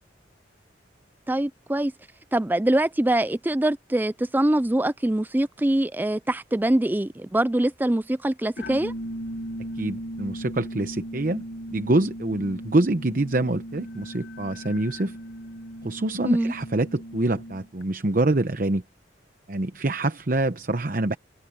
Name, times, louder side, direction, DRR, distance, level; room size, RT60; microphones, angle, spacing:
voice 1, 1.3-1.9 2.3-8.9 16.2-16.5, right 1 dB, 10° right, 0.4 m, -23 dB
sound 1, 8.6-17.8, equal, 60° left, 1.4 m, -37 dB
voice 2, 9.7-11.4 11.7-15.2 15.8-18.8 19.5-21.2, right 2 dB, 45° right, 0.9 m, -25 dB
open air
head